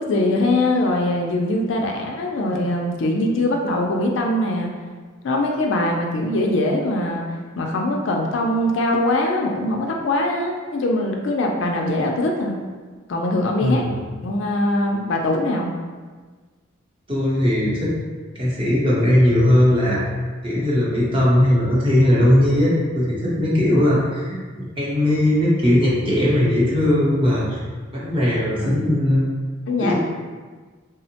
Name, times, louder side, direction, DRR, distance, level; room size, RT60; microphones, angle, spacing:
voice 1, 0.0-4.7 5.2-7.2 7.6-12.6 13.1-13.8 14.2-15.7 28.5-28.7 29.7-30.0, left 1 dB, 65° left, 1 dB, 0.3 m, -22 dB
voice 2, 13.6-13.9 17.1-17.9 18.3-20.1 20.4-27.6 27.9-29.2 29.8-30.0, left 1 dB, 25° right, -7 dB, 0.7 m, -18 dB
3.5 x 2.0 x 2.7 m, 1.4 s
head